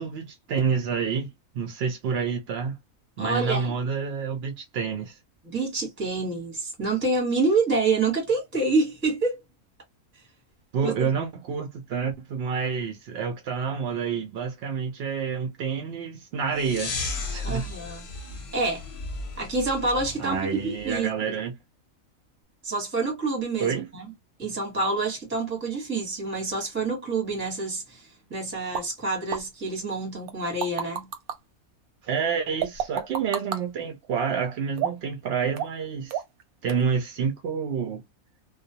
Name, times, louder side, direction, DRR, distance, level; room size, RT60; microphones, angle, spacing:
voice 1, 0.0-2.8 3.2-5.2 10.7-16.9 17.3-17.7 20.2-21.6 23.6-23.9 32.0-36.2 36.6-38.0, right 6 dB, 70° right, 0.6 m, -28 dB
voice 2, 3.2-3.7 5.4-9.4 10.8-11.1 17.4-18.1 18.5-18.8 19.4-21.3 22.6-24.0 24.4-31.1, right 3 dB, 10° right, 0.8 m, -27 dB
sound 1, 16.5-21.0, left 3 dB, 50° left, 0.7 m, -35 dB
sound 2, 28.7-28.9 29.3-29.4 30.3-31.4 32.6-33.6 34.8-35.1 35.6-35.8 36.1-36.4 36.7-36.8, right 8 dB, 90° right, 1.1 m, -29 dB
2.3 x 2.1 x 2.7 m
omnidirectional pair, 1.5 m